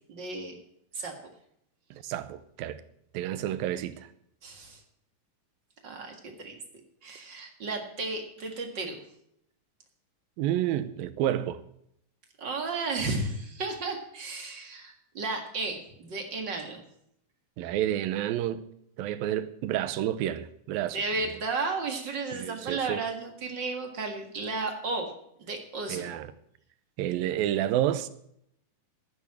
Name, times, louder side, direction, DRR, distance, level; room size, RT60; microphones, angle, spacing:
voice 1, 0.1-0.6 0.9-1.1 4.4-4.8 5.8-6.6 7.0-9.0 12.4-16.8 20.9-25.1 25.4-26.1, right 3 dB, 40° right, 1.9 m, -33 dB
voice 2, 1.9-2.8 3.1-4.1 10.4-11.6 17.6-18.6 19.0-21.0 22.3-23.0 25.9-26.3 27.0-28.1, right 12 dB, 85° right, 2.6 m, -30 dB
11.0 x 9.9 x 7.3 m
omnidirectional pair, 4.1 m